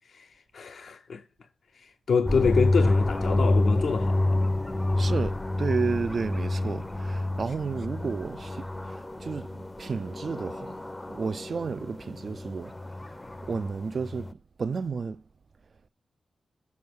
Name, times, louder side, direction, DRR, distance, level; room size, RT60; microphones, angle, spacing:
voice 1, 0.1-1.2 1.8-4.4 4.9-5.1, left 5 dB, 75° left, 0.5 m, -27 dB
sound 1, 2.3-14.3, left 2 dB, 20° left, 0.5 m, -28 dB
voice 2, 5.0-10.8 11.0-12.8 13.4-15.2, right 5 dB, 60° right, 0.3 m, -32 dB
7.0 x 4.7 x 6.2 m
supercardioid pair, 45°, 0 cm